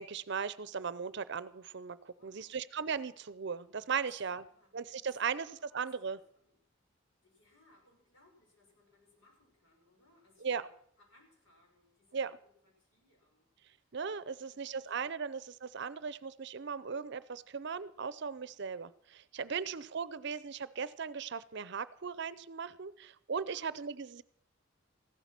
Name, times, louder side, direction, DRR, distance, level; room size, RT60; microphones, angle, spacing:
voice 1, 0.0-4.5 4.7-6.2 10.4-10.7 12.1-12.3 13.9-24.2, right 6 dB, 60° right, 17 dB, 0.6 m, -38 dB
voice 2, 2.2-2.6 4.0-4.7 5.0-6.6 7.2-10.7 11.0-13.5 13.8-13.9 14.4-15.3 19.5-20.3 23.5-23.9, left 2 dB, 85° left, 0 dB, 6.1 m, -67 dB
15.0 x 12.5 x 6.0 m, 0.64 s
head